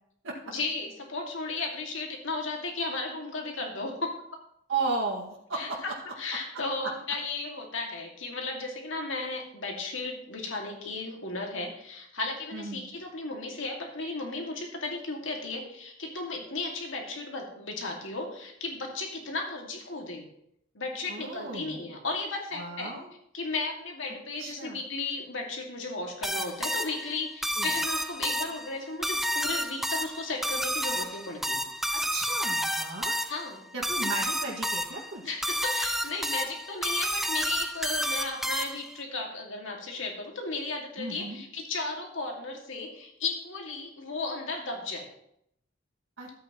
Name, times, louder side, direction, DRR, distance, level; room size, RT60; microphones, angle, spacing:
voice 1, 0.5-4.1 5.5-20.3 20.7-22.9 23.3-31.6 33.3-33.6 35.3-45.0, left 3 dB, 80° left, 1 dB, 2.2 m, -35 dB
voice 2, 4.7-5.8 12.5-12.9 21.1-21.8 22.6-23.1 24.4-24.8 27.6-27.7 31.9-33.1 33.7-35.3 41.0-41.4 46.2-46.3, right 3 dB, 90° right, -3 dB, 2.0 m, -35 dB
sound 1, 26.2-39.0, equal, ahead, 0.4 m, -30 dB
13.0 x 8.4 x 3.0 m, 0.73 s
head